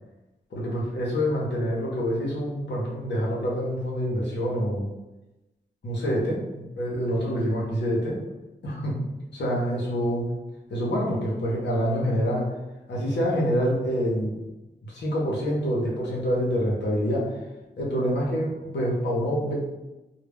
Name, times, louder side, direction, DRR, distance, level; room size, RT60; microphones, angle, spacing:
voice 1, 0.5-4.9 5.8-8.2 8.6-9.0 9.3-10.2 10.7-12.5 12.9-14.4 14.8-17.4 17.8-19.5, equal, 75° left, -4 dB, 0.7 m, -26 dB
2.1 x 2.0 x 3.4 m, 1.0 s
cardioid pair, 55°, 18 cm